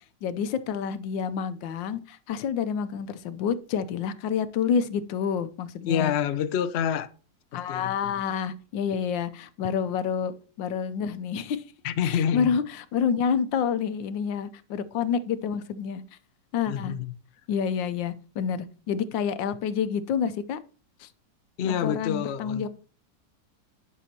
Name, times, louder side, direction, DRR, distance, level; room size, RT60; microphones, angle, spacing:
voice 1, 0.2-6.1 7.5-10.3 10.6-11.6 12.0-16.0 16.5-16.9 17.5-20.6 21.0-21.1 21.6-22.7, left 7 dB, 90° left, 1.4 m, -28 dB
voice 2, 5.9-7.1 7.5-8.1 11.8-12.5 16.7-17.1 21.6-22.7, left 8 dB, 70° left, 0.6 m, -27 dB
11.0 x 6.3 x 2.8 m
omnidirectional pair, 2.0 m